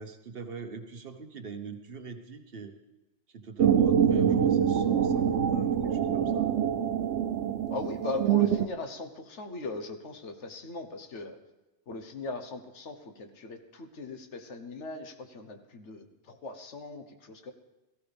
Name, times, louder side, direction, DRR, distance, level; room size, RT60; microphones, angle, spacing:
voice 1, 0.0-2.8 3.3-6.5, right 5 dB, 55° right, 7 dB, 1.2 m, -43 dB
sound 1, 3.6-8.7, right 8 dB, 80° right, 0.9 m, -25 dB
voice 2, 7.7-11.4 11.9-17.5, left 3 dB, 80° left, 6 dB, 1.4 m, -39 dB
17.0 x 14.5 x 3.5 m, 1.0 s
omnidirectional pair, 1.2 m